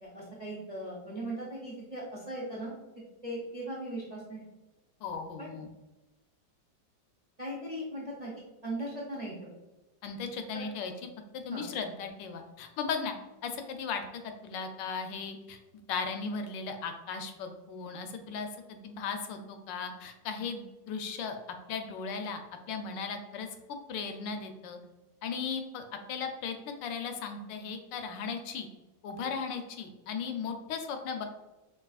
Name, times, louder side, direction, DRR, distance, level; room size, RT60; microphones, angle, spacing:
voice 1, 0.0-2.8 3.2-4.4 5.4-5.5 7.4-9.5 10.5-10.7 11.5-11.6, right 1 dB, 45° right, -5 dB, 0.5 m, -38 dB
voice 2, 5.0-5.7 10.0-10.9 11.4-13.1 13.4-15.6 15.9-21.4 21.7-22.4 22.7-23.5 23.9-24.8 25.2-28.7 29.0-31.3, left 5 dB, 80° left, 6 dB, 1.2 m, -37 dB
4.7 x 2.9 x 2.3 m, 1.1 s
omnidirectional pair, 1.9 m